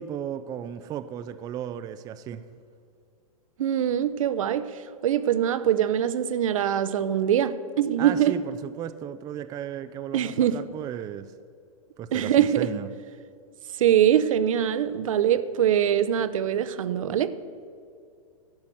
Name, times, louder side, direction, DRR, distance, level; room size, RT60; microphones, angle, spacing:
voice 1, 0.0-2.4 8.0-11.3 12.0-12.9, right 10 dB, 20° right, 0.4 m, -35 dB
voice 2, 3.6-8.4 10.1-10.6 12.1-12.7 13.8-17.3, right 10 dB, 65° right, 0.6 m, -23 dB
12.0 x 5.8 x 7.8 m
hypercardioid pair, 110°, 19 cm